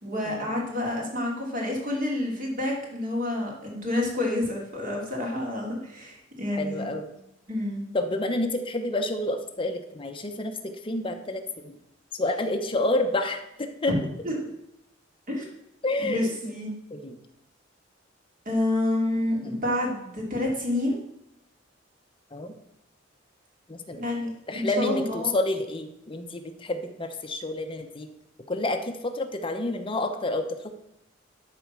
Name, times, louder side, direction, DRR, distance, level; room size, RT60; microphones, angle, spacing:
voice 1, 0.0-6.9 7.5-7.8 13.9-14.0 14.2-14.4 15.3-15.5 16.0-16.7 18.4-21.0 23.9-25.3, left 1 dB, 45° right, -1 dB, 2.8 m, -28 dB
voice 2, 6.5-7.1 7.9-11.8 12.1-14.0 15.8-16.5 16.9-17.2 19.4-19.6 22.3-22.5 23.7-24.1 24.5-28.1 28.5-30.7, left 2 dB, 25° left, 5 dB, 0.9 m, -29 dB
12.0 x 4.3 x 6.1 m, 0.83 s
head